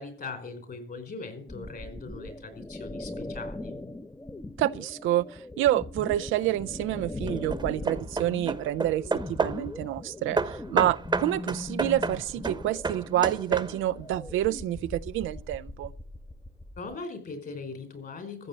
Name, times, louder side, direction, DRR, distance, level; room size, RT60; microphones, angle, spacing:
voice 1, 0.0-3.8 16.8-18.5, left 3 dB, 50° left, 4.6 m, -40 dB
sound 1, 1.5-16.9, left 2 dB, 15° left, 0.8 m, -40 dB
voice 2, 4.6-15.9, right 13 dB, 85° right, 0.5 m, -28 dB
Hammer / Wood, 6.1-6.6 7.3-9.7 10.4-14.0, right 3 dB, 20° right, 1.0 m, -31 dB
14.5 x 7.4 x 7.3 m
cardioid pair, 90°, 20 cm